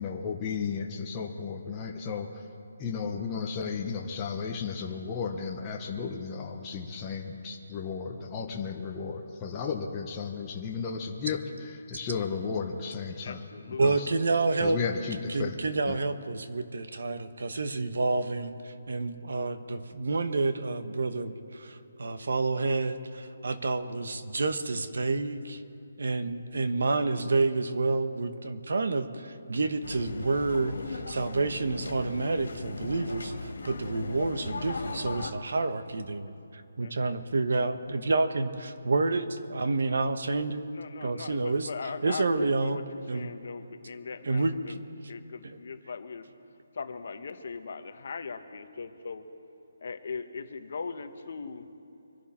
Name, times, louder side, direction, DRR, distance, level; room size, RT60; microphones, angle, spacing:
voice 1, 0.0-2.4 2.8-13.5 13.8-14.1 14.6-15.6 15.9-16.0, left 5 dB, 15° left, -1 dB, 0.7 m, -34 dB
voice 2, 13.2-13.9 36.8-37.2 40.7-44.8 45.1-46.3 46.7-49.3 49.8-51.7, left 5 dB, 45° left, 8 dB, 1.0 m, -39 dB
voice 3, 13.8-14.8 15.3-25.6 26.0-40.7 41.0-41.7 42.0-42.8 43.1-43.3 44.2-44.8 45.4-45.6, right 3 dB, 60° right, 9 dB, 1.1 m, -29 dB
sound 1, 29.8-35.3, left 3 dB, 70° left, 2.3 m, -38 dB
25.0 x 11.5 x 4.3 m, 3.0 s
hypercardioid pair, 175°, 0 cm